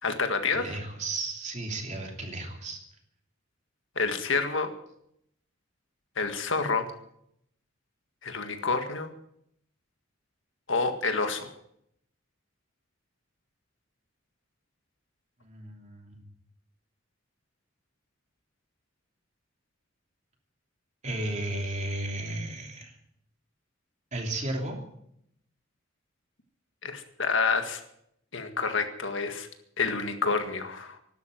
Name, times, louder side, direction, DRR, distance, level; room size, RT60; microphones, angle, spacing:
voice 1, 0.0-0.8 4.0-4.7 6.2-6.9 8.2-9.1 10.7-11.5 26.8-27.8 28.3-29.5 29.8-31.0, left 4 dB, 70° left, 7 dB, 1.8 m, -28 dB
voice 2, 0.5-2.8 15.4-16.2 21.0-23.0 24.1-24.8, right 2 dB, 35° right, 2 dB, 3.1 m, -34 dB
12.5 x 12.0 x 9.1 m, 0.74 s
head